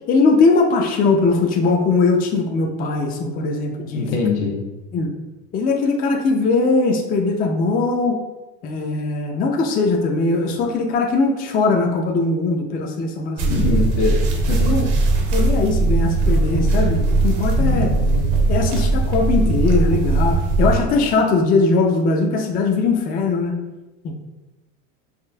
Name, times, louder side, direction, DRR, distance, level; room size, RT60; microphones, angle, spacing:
voice 1, 0.1-4.1 4.9-5.1 5.5-8.2 8.6-13.8 14.6-14.9 15.3-17.9 18.5-23.6 24.0-24.1, left 3 dB, 30° left, 2 dB, 0.4 m, -20 dB
voice 2, 3.9-4.6 13.5-14.8, left 4 dB, 80° left, 0 dB, 0.9 m, -22 dB
sound 1, 13.4-20.8, right 2 dB, 70° right, 1.0 m, -19 dB
5.0 x 2.5 x 2.2 m, 1.1 s
supercardioid pair, 115°, 33 cm